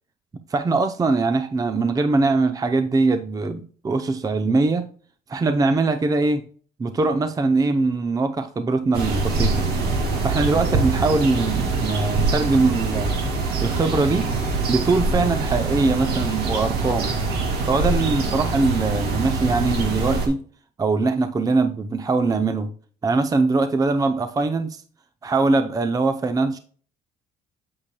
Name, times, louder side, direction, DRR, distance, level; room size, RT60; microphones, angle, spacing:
voice 1, 0.5-4.9 5.3-6.5 6.8-9.7 10.2-13.2 13.6-14.4 14.7-17.1 17.7-20.4 20.8-22.7 23.0-24.8 25.2-26.6, right 3 dB, 20° right, 0.6 m, -22 dB
sound 1, 8.9-20.3, right 3 dB, 70° right, 2.1 m, -24 dB
8.6 x 8.3 x 2.2 m
cardioid pair, 110°, 17 cm